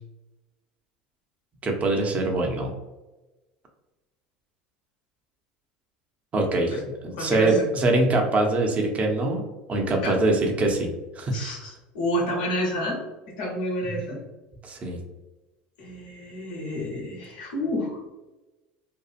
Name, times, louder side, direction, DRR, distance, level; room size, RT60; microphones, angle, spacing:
voice 1, 1.6-2.7 6.3-6.7 7.0-11.4 14.6-15.0, right 2 dB, 35° right, 2 dB, 0.6 m, -23 dB
voice 2, 7.2-7.7 9.9-10.2 11.3-13.0 13.4-14.2 15.8-18.0, equal, 75° left, -2 dB, 0.9 m, -29 dB
2.7 x 2.3 x 2.4 m, 1.1 s
hypercardioid pair, 80°, 4 cm